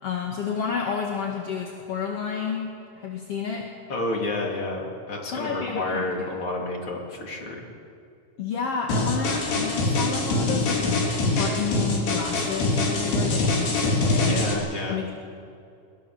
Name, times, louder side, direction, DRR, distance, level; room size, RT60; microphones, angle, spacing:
voice 1, 0.0-3.7 5.3-6.3 8.4-10.9 11.2-14.5 14.9-15.1, left 6 dB, 50° left, 0 dB, 2.2 m, -30 dB
voice 2, 3.9-7.7 14.0-15.0, left 2 dB, 35° left, -1 dB, 3.9 m, -30 dB
sound 1, 8.9-14.5, left 2 dB, 85° left, 5.7 m, -24 dB
23.0 x 22.0 x 7.2 m, 2.5 s
omnidirectional pair, 4.7 m